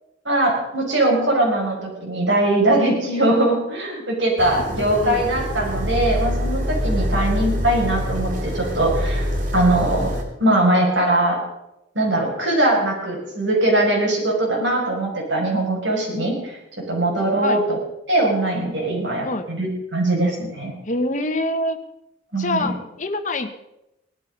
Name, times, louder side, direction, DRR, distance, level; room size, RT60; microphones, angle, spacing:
voice 1, 0.2-11.4 11.9-17.8 18.1-20.7 22.3-22.7, right 1 dB, 80° right, -1 dB, 6.0 m, -21 dB
sound 1, 4.4-10.2, equal, 45° right, 3.0 m, -25 dB
voice 2, 4.5-5.2 7.1-7.3 17.4-17.6 19.2-19.5 20.9-21.8 22.4-23.5, left 2 dB, 40° left, 7 dB, 1.4 m, -26 dB
18.5 x 12.5 x 5.5 m, 0.87 s
head